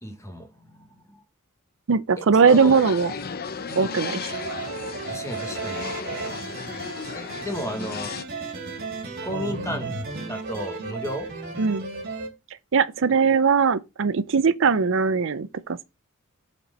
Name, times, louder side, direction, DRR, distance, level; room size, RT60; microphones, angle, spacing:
voice 1, 0.0-1.2 2.2-2.8 3.7-3.9 5.1-5.9 7.1-8.1 9.2-10.0 10.3-11.3, equal, 15° left, 1.5 m, -34 dB
voice 2, 1.9-3.1 3.8-4.3 11.6-11.8 12.7-15.8, right 5 dB, 65° right, 0.5 m, -20 dB
sound 1, 2.5-8.2, left 5 dB, 45° left, 0.7 m, -35 dB
sound 2, 4.3-12.3, right 3 dB, 50° right, 2.8 m, -34 dB
7.1 x 4.4 x 5.2 m
head